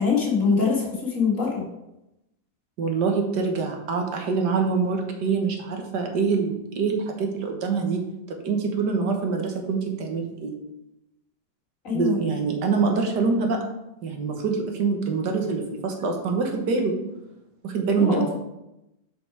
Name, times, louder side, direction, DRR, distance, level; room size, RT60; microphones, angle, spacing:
voice 1, 0.0-1.6 11.8-12.3 18.0-18.3, left 5 dB, 50° left, -2 dB, 2.2 m, -23 dB
voice 2, 2.8-8.0 8.3-10.6 11.9-13.6 14.0-16.9 17.6-18.3, right 5 dB, 75° right, 3 dB, 1.7 m, -25 dB
6.7 x 5.8 x 4.8 m, 0.90 s
omnidirectional pair, 1.8 m